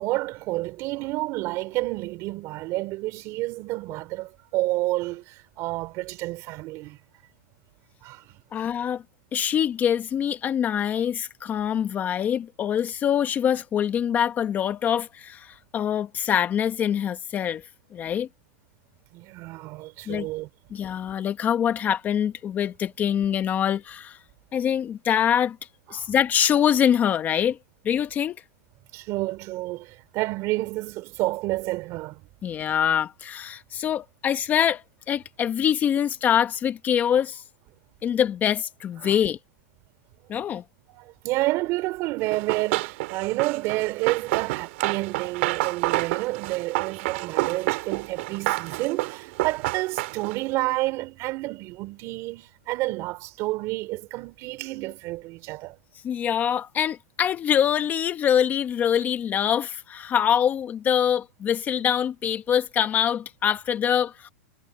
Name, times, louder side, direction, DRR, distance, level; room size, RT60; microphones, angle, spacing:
voice 1, 0.0-7.0 8.0-8.6 19.1-20.5 25.9-26.1 28.9-32.2 39.0-39.2 40.9-55.8, right 19 dB, 35° right, 3.5 m, -30 dB
voice 2, 8.5-9.0 9.3-17.6 17.9-18.3 20.1-20.3 20.7-24.2 24.5-25.6 25.9-27.6 27.8-28.4 32.4-37.4 38.0-39.4 40.3-40.6 56.0-64.3, left 9 dB, 20° left, 1.2 m, -24 dB
Run, 42.3-50.5, right 22 dB, 50° right, 2.8 m, -29 dB
hypercardioid pair, 150°, 8 cm